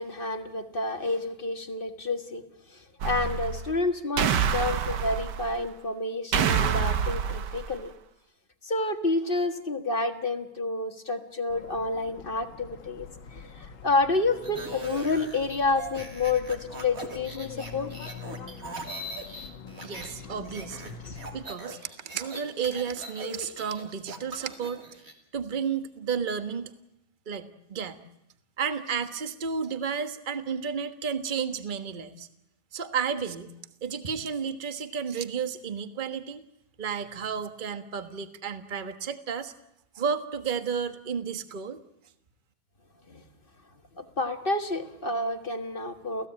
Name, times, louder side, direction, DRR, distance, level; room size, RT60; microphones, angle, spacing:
voice 1, 0.0-2.4 2.7-7.9 8.6-17.9 21.0-21.2 43.1-43.2 44.0-46.3, left 3 dB, 30° left, 7 dB, 1.6 m, -29 dB
sound 1, 3.0-3.7 4.2-5.6 6.3-7.7, right 7 dB, 60° right, 1.7 m, -27 dB
sound 2, 11.5-21.5, left 6 dB, 75° left, 2.2 m, -45 dB
sound 3, 14.3-20.1 20.4-25.1, right 1 dB, 45° right, 3.3 m, -40 dB
voice 2, 19.8-20.9 21.3-24.8 25.3-26.7 27.3-28.0 28.6-32.3 32.7-33.5 33.8-36.4 36.8-39.5 39.9-41.8, right 6 dB, 30° right, 10 dB, 1.4 m, -32 dB
30.0 x 16.5 x 8.8 m, 0.82 s
omnidirectional pair, 2.1 m